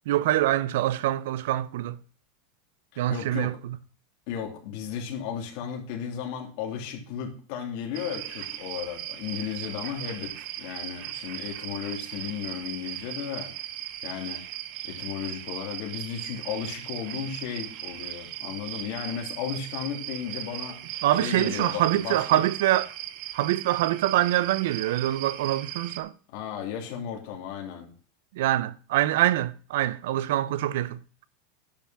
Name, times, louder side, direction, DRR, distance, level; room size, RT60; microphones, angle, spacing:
voice 1, 0.1-2.0 3.0-3.5 21.0-22.9 23.3-26.1 28.3-31.0, right 14 dB, 75° right, 0.7 m, -25 dB
voice 2, 2.9-3.6 4.3-13.5 14.0-14.4 14.8-20.8 21.1-22.4 26.3-27.9, left 8 dB, 55° left, 3.0 m, -34 dB
sound 1, 7.9-26.0, right 13 dB, 50° right, 0.9 m, -38 dB
10.5 x 5.9 x 5.7 m
supercardioid pair, 160°, 0 cm